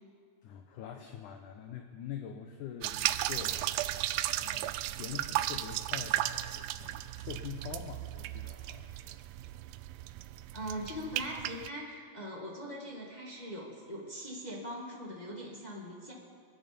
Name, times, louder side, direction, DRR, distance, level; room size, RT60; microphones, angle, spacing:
voice 1, 0.4-9.2, left 9 dB, 75° left, 5 dB, 2.0 m, -45 dB
sound 1, 2.8-11.7, right 14 dB, 80° right, 2.2 m, -35 dB
voice 2, 10.5-16.1, equal, 20° left, -3 dB, 1.0 m, -41 dB
27.5 x 9.9 x 5.3 m, 2.1 s
omnidirectional pair, 4.4 m